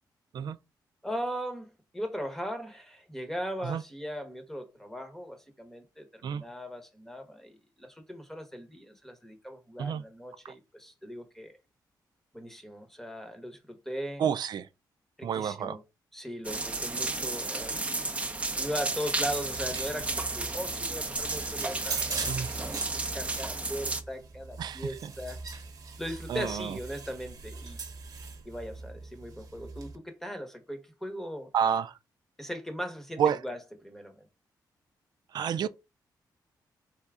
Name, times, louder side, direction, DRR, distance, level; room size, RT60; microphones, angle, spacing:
voice 1, 1.0-11.5 12.3-14.3 15.2-15.8 16.1-17.9 18.6-22.2 22.5-25.4 26.0-27.8 28.4-31.5 32.4-34.3, equal, 5° left, 1.0 m, -39 dB
voice 2, 14.2-14.7 15.2-15.8 22.3-22.5 24.6-24.9 26.3-26.7 31.5-31.9 33.2-33.4 35.3-35.7, right 8 dB, 65° right, 0.4 m, -29 dB
sound 1, 16.4-24.0, right 3 dB, 15° right, 0.6 m, -33 dB
sound 2, 19.2-30.0, right 4 dB, 50° right, 1.0 m, -41 dB
4.2 x 3.5 x 3.6 m
cardioid pair, 115°, 8 cm